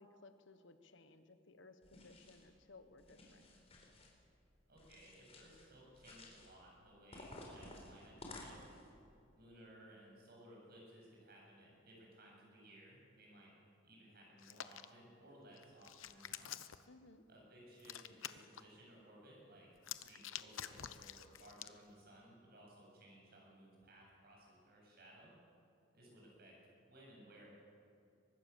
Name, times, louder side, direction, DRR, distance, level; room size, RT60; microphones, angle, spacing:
voice 1, 0.0-3.5 16.9-17.2, left 3 dB, 65° left, 9 dB, 1.4 m, -61 dB
sound 1, 1.8-2.5 3.0-4.1 4.8-5.7 5.9-6.5 7.1-8.9, left 2 dB, 30° left, 4.3 m, -55 dB
voice 2, 4.7-8.6 9.3-13.6 13.8-16.5 17.3-19.7 20.1-25.3 25.9-26.6 26.9-27.6, right 1 dB, 50° right, -2 dB, 7.8 m, -60 dB
Hands, 14.4-14.8 15.6-16.8 17.8-18.6 19.8-21.8, left 10 dB, 85° left, 0.9 m, -48 dB
24.0 x 20.0 x 7.2 m, 2.6 s
head